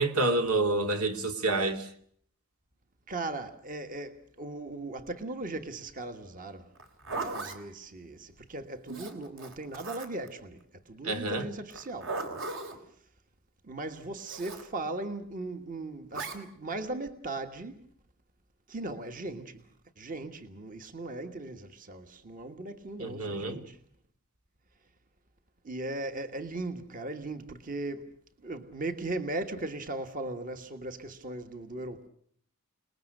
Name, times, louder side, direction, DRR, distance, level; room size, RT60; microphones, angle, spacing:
voice 1, 0.0-1.9 8.9-9.0 11.0-11.4 23.0-23.6, right 2 dB, 85° right, 2.6 m, -28 dB
voice 2, 3.1-6.7 7.1-12.1 13.6-17.8 18.7-19.6 20.0-23.8 25.6-28.1 28.4-32.1, right 2 dB, 40° right, 1.5 m, -38 dB
Zipper (clothing), 6.7-7.6 8.9-10.3 11.7-12.8 14.3-14.7 16.1-16.4, right 3 dB, 60° right, 3.6 m, -37 dB
29.0 x 20.0 x 6.6 m
head